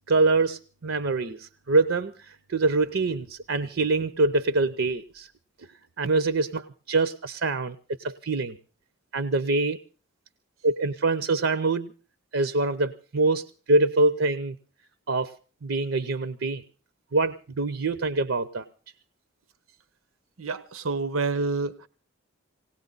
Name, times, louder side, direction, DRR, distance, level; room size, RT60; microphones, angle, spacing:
voice 1, 0.1-5.3 6.0-8.6 9.1-9.8 10.6-11.9 12.3-14.5 15.1-15.3 15.6-16.6 17.1-18.7, right 3 dB, 70° right, 13 dB, 0.7 m, -25 dB
voice 2, 20.4-21.9, right 3 dB, 90° right, 14 dB, 1.0 m, -28 dB
19.5 x 18.0 x 4.0 m, 0.38 s
head